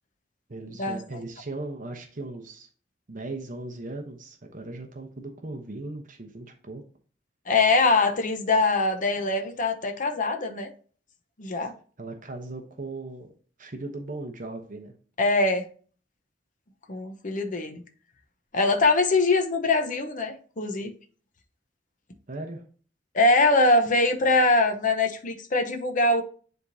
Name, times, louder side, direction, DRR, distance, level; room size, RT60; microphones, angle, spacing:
voice 1, 0.5-2.7 3.1-6.8 12.0-13.3 13.6-14.9 22.3-22.6, right 2 dB, 45° right, 0.9 m, -38 dB
voice 2, 7.5-10.7 11.4-11.7 15.2-15.6 16.9-17.8 18.5-20.9 23.1-26.2, left 2 dB, 45° left, 0.9 m, -23 dB
10.0 x 3.6 x 2.7 m
head